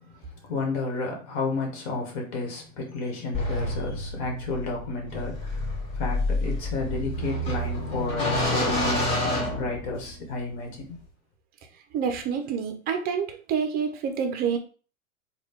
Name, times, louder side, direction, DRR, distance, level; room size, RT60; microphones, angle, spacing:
voice 1, 0.2-5.7 6.0-11.0, left 3 dB, 50° left, 1.7 m, -32 dB
thin metal sliding door open sqeaking heavy, 3.3-10.3, left 1 dB, 15° left, 2.1 m, -28 dB
voice 2, 11.9-14.6, right 7 dB, 20° right, 0.6 m, -27 dB
3.9 x 2.4 x 3.6 m
hypercardioid pair, 125°, 42 cm